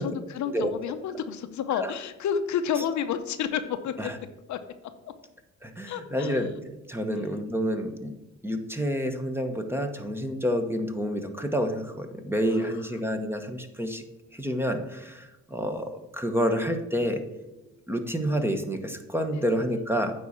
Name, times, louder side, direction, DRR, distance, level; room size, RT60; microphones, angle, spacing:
voice 1, 0.0-4.1 4.5-4.9 5.8-6.4 7.1-7.4 12.5-12.7 19.3-19.5, left 8 dB, 70° left, 9 dB, 0.8 m, -31 dB
voice 2, 5.6-8.1 8.4-14.0 14.3-17.2 17.9-20.1, equal, 10° right, 6 dB, 1.1 m, -29 dB
9.3 x 4.2 x 7.4 m, 0.98 s
cardioid pair, 90°, 30 cm